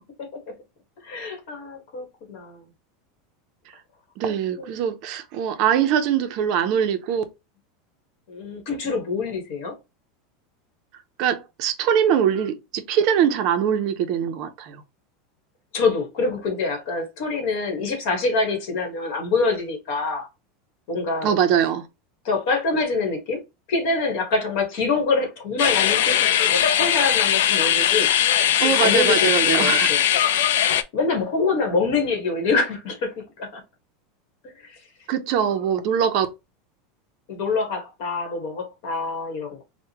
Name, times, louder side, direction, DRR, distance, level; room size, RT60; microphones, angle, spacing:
voice 1, 1.0-2.6 4.6-4.8 8.3-9.7 15.7-20.3 20.9-21.3 22.2-23.4 23.7-30.0 30.9-33.6 34.6-34.8 35.4-35.6 37.3-39.6, left 4 dB, 50° left, 1.3 m, -25 dB
voice 2, 4.2-7.2 11.2-14.8 21.2-21.9 28.6-29.9 35.1-36.3, right 8 dB, 40° right, 0.5 m, -22 dB
sound 1, 25.6-30.8, left 10 dB, 80° left, 0.4 m, -20 dB
4.6 x 2.1 x 2.8 m
supercardioid pair, 170°, 0 cm